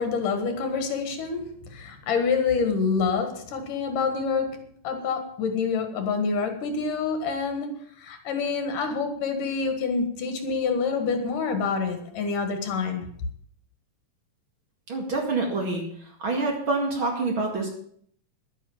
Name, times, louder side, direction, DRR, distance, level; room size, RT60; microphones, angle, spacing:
voice 1, 0.0-13.1, left 5 dB, 75° left, 3.3 m, -27 dB
voice 2, 14.9-15.8 16.2-17.7, right 3 dB, 40° right, 2.6 m, -26 dB
11.0 x 10.0 x 7.1 m
omnidirectional pair, 3.8 m